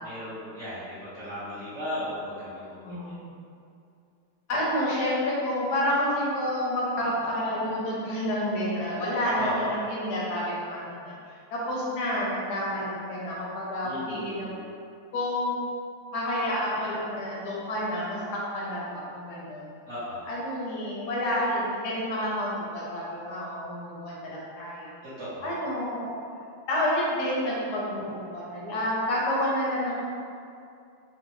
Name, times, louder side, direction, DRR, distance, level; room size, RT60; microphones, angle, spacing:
voice 1, 0.0-3.1 9.3-9.9 13.8-14.6 19.9-20.3 25.0-25.5, equal, 75° right, -14 dB, 0.6 m, -36 dB
voice 2, 2.8-3.3 4.5-14.6 15.1-15.6 16.1-18.8 19.1-19.7 20.3-24.9 25.4-26.1 26.7-30.0, left 1 dB, 75° left, -5 dB, 0.9 m, -29 dB
3.8 x 2.1 x 2.9 m, 2.5 s
omnidirectional pair, 2.4 m